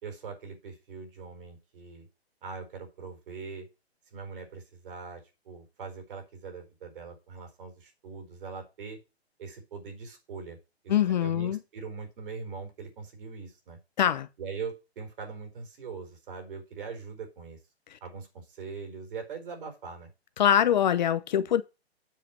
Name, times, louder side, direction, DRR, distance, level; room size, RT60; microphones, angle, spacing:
voice 1, 0.0-2.1 2.4-3.7 4.1-9.0 9.4-10.6 10.8-13.8 14.4-17.6 18.0-20.1, right 5 dB, 55° right, 4.3 m, -41 dB
voice 2, 10.9-11.6 14.0-14.3 17.9-18.0 20.4-21.6, left 10 dB, 45° left, 0.8 m, -24 dB
7.6 x 6.7 x 5.9 m
hypercardioid pair, 145°, 32 cm